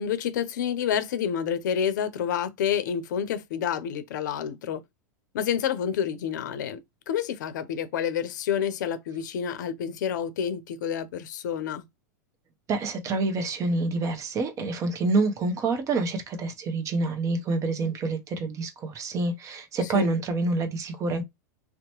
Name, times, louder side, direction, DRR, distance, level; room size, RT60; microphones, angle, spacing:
voice 1, 0.0-4.8 5.3-6.8 7.1-11.8 19.8-20.1, left 8 dB, 75° left, 0.6 m, -28 dB
voice 2, 12.7-21.2, right 3 dB, 30° right, 0.7 m, -27 dB
2.8 x 2.1 x 2.9 m
hypercardioid pair, 115°, 10 cm